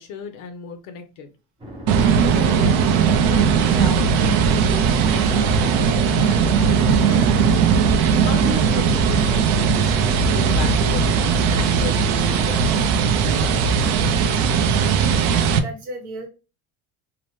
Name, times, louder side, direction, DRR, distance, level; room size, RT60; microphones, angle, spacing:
voice 1, 0.0-1.3 2.2-7.6 7.9-13.6, left 6 dB, 60° left, 7 dB, 0.7 m, -36 dB
sound 1, 1.6-7.7, equal, 15° right, 0.6 m, -40 dB
sound 2, 1.9-15.6, right 6 dB, 80° right, 0.5 m, -18 dB
Keyboard (musical), 6.5-12.5, left 4 dB, 15° left, 1.0 m, -37 dB
voice 2, 15.1-16.3, right 1 dB, 55° right, 3 dB, 0.9 m, -36 dB
2.8 x 2.0 x 3.0 m, 0.31 s
cardioid pair, 175°, 38 cm